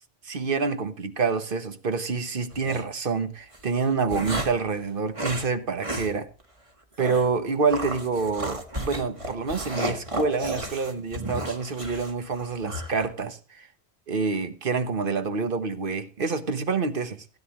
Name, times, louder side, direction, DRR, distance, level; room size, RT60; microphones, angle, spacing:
voice 1, 0.2-6.3 7.0-13.7 14.1-17.2, right 4 dB, 50° right, 1.3 m, -27 dB
sound 1, 2.5-2.8 3.5-4.7 5.1-5.5 5.8-6.1 6.4-6.5 7.0-7.3 7.7-13.1, right 1 dB, 30° right, 1.7 m, -33 dB
16.5 x 9.6 x 3.1 m
omnidirectional pair, 1.1 m